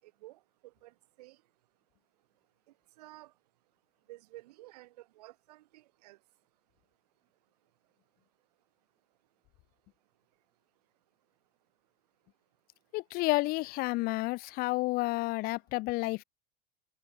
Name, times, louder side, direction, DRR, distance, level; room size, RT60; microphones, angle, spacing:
voice 1, 0.8-1.4 3.0-3.3 4.1-6.2, right 18 dB, 75° right, 2.6 m, -52 dB
voice 2, 12.9-16.2, left 21 dB, 45° left, 0.4 m, -30 dB
hypercardioid pair, 90°, 21 cm